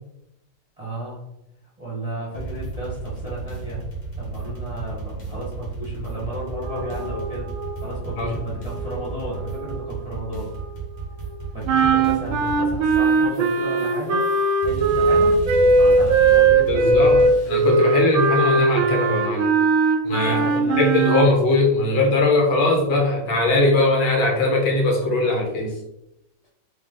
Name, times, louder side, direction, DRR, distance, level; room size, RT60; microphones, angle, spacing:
voice 1, 0.8-1.2 1.8-3.9 4.2-7.5 7.8-10.5 11.5-14.2 14.6-15.4 15.7-17.2 20.2-20.8, right 1 dB, 20° right, -8 dB, 1.0 m, -33 dB
sound 1, 2.3-17.9, right 3 dB, 45° left, 0.6 m, -33 dB
sound 2, 6.4-12.9, right 1 dB, 50° right, 1.2 m, -39 dB
sound 3, 11.7-21.3, right 3 dB, 75° right, 1.2 m, -18 dB
voice 2, 16.7-17.2 17.5-19.5 20.1-20.4 20.8-25.7, left 2 dB, 70° left, 0 dB, 1.6 m, -20 dB
3.9 x 2.9 x 3.7 m, 0.85 s
omnidirectional pair, 2.4 m